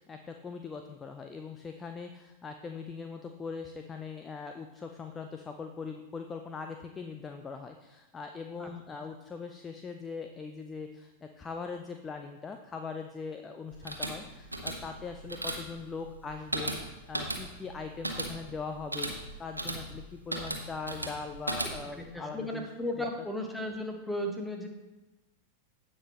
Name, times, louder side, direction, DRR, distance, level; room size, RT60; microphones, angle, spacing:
voice 1, 0.0-22.7 23.0-23.1, left 5 dB, 20° left, 6 dB, 0.5 m, -41 dB
sound 1, 13.7-22.0, right 1 dB, 85° right, 1.0 m, -37 dB
voice 2, 21.9-24.7, left 1 dB, 5° left, 3 dB, 1.3 m, -35 dB
16.0 x 5.4 x 2.9 m, 1.1 s
figure-of-eight pair, 90°, 0 cm